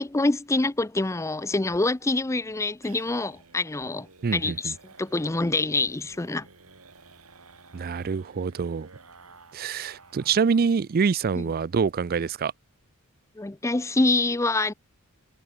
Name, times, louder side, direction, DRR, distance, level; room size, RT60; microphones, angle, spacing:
voice 1, 0.0-4.1 4.3-6.5 11.4-11.5 13.4-14.7, left 2 dB, 15° left, 0.5 m, -26 dB
sound 1, 1.6-10.7 11.0-11.1 11.4-11.5 11.8-12.3, right 3 dB, 80° right, 6.4 m, -53 dB
voice 2, 4.2-4.7 7.7-8.9 9.5-12.5, right 5 dB, 45° right, 0.4 m, -25 dB
head